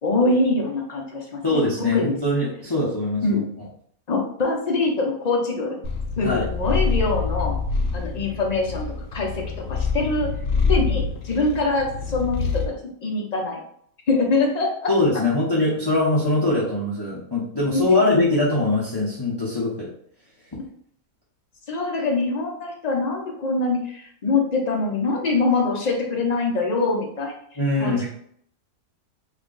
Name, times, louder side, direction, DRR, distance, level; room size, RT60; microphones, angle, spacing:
voice 1, 0.0-1.6 1.9-2.1 3.2-3.5 4.1-5.8 6.2-7.5 7.9-8.9 9.1-9.4 9.7-10.3 10.7-13.6 14.1-14.9 17.7-17.8 21.7-28.1, left 3 dB, 60° left, 0 dB, 0.4 m, -24 dB
voice 2, 1.4-3.4 6.2-6.4 14.9-19.9 27.6-28.1, left 2 dB, 20° left, -8 dB, 0.7 m, -22 dB
Purr, 5.8-12.8, left 4 dB, 85° left, 1.2 m, -26 dB
3.4 x 2.2 x 3.8 m, 0.64 s
omnidirectional pair, 1.6 m